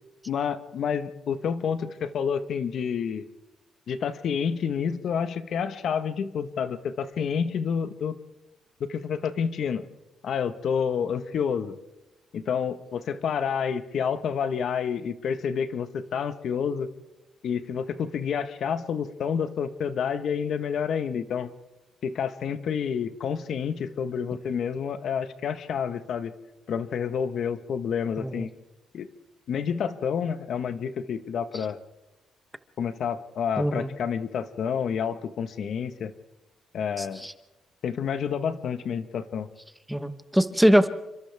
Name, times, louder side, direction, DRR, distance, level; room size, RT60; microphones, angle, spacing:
voice 1, 0.3-3.2 3.9-8.2 8.9-9.8 10.2-11.7 12.3-16.9 17.4-21.5 22.0-26.3 26.7-28.5 28.9-29.1 29.5-31.8 32.8-36.1 36.7-37.2 37.8-39.5, left 7 dB, 65° left, 10 dB, 1.4 m, -29 dB
voice 2, 33.6-33.9 37.2-37.3 39.9-40.9, equal, 5° right, 10 dB, 1.1 m, -22 dB
29.5 x 25.0 x 3.6 m, 1.0 s
cardioid pair, 115°, 0 cm